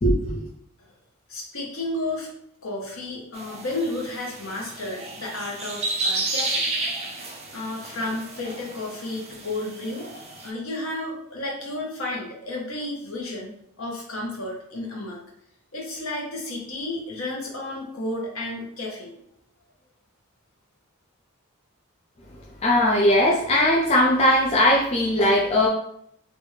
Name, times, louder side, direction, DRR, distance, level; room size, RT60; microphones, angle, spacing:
voice 1, 0.0-0.5 22.6-25.7, left 1 dB, 30° left, -2 dB, 0.4 m, -19 dB
voice 2, 1.3-2.3 2.6-6.7 7.5-10.1 10.4-13.5 13.8-15.2 15.7-19.2, left 2 dB, 70° left, -2 dB, 1.0 m, -32 dB
sound 1, 3.3-10.5, right 2 dB, 30° right, 0.5 m, -32 dB
3.2 x 2.5 x 3.2 m, 0.71 s
head